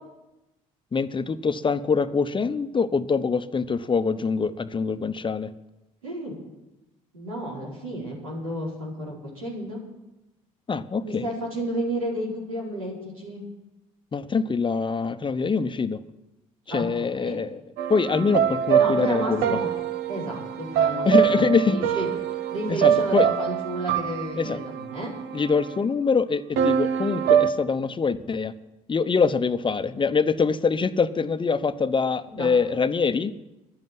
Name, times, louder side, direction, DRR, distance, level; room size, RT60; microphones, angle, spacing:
voice 1, 0.9-5.5 10.7-11.3 14.1-16.0 16.7-17.6 17.9-19.4 21.0-21.8 22.7-23.3 24.4-24.6 25.3-28.5 28.9-33.3, left 5 dB, 30° left, 11 dB, 0.9 m, -24 dB
voice 2, 6.0-6.4 7.1-9.8 11.0-13.4 16.7-17.4 18.7-19.7 20.1-22.1 22.5-25.1 32.3-32.5, right 1 dB, 90° right, -4 dB, 4.4 m, -32 dB
sound 1, 17.8-25.8 26.6-27.5, right 9 dB, 70° right, 1.0 m, -24 dB
11.0 x 10.5 x 9.6 m, 1.0 s
hypercardioid pair, 55°, 17 cm